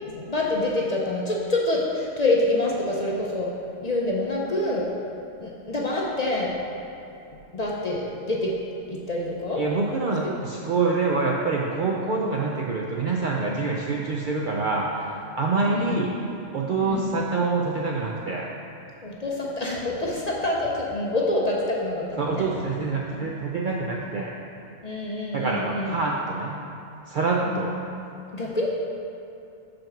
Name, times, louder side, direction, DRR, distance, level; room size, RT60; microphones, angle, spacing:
voice 1, 0.0-3.5 3.8-4.9 5.4-6.5 7.5-8.5 8.9-9.6 15.7-16.0 16.8-17.1 19.0-22.4 23.1-23.3 24.8-25.9 27.4-27.9 28.3-28.7, left 2 dB, 45° left, -3 dB, 0.5 m, -26 dB
voice 2, 9.6-16.1 16.5-18.5 22.2-24.3 25.3-26.6 27.1-27.7, right 3 dB, 60° right, -2 dB, 0.5 m, -26 dB
5.1 x 4.4 x 5.8 m, 2.6 s
omnidirectional pair, 1.2 m